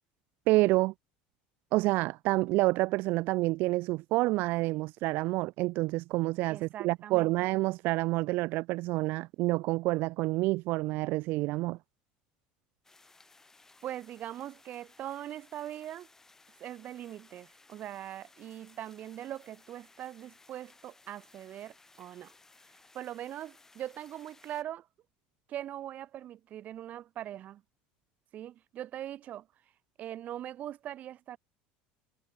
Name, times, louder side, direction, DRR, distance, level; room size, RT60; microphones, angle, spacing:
voice 1, 0.5-0.9 1.7-11.8, right 21 dB, 60° right, 0.6 m, -28 dB
voice 2, 6.5-7.3 13.8-16.1 16.6-22.3 22.9-24.9 25.5-27.6 28.3-29.5 30.0-31.4, right 12 dB, 45° right, 6.0 m, -41 dB
sound 1, 12.8-24.6, left 3 dB, 10° left, 5.2 m, -60 dB
cardioid pair, 135°, 4 cm